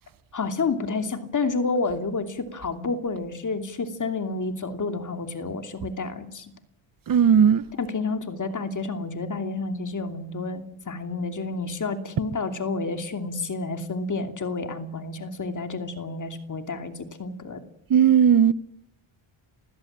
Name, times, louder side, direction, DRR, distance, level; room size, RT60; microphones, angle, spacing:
voice 1, 0.3-6.5 7.8-17.6, left 3 dB, 40° left, 2.8 m, -30 dB
voice 2, 7.1-7.6 17.9-18.5, right 8 dB, 45° right, 0.9 m, -16 dB
29.5 x 16.0 x 7.5 m
cardioid pair, 95°, 49 cm